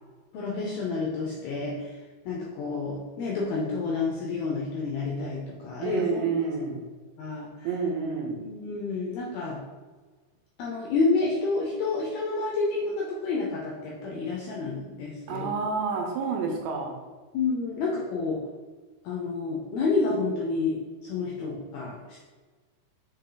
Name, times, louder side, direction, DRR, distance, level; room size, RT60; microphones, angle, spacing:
voice 1, 0.3-2.0 2.3-6.2 7.2-7.7 8.3-9.6 10.6-15.5 16.5-16.6 17.3-18.4 19.0-22.2, left 3 dB, 80° left, -2 dB, 2.2 m, -29 dB
voice 2, 5.8-6.8 7.6-8.4 15.3-17.0, right 5 dB, 75° right, 1 dB, 2.8 m, -29 dB
6.9 x 3.9 x 3.8 m, 1.4 s
omnidirectional pair, 5.2 m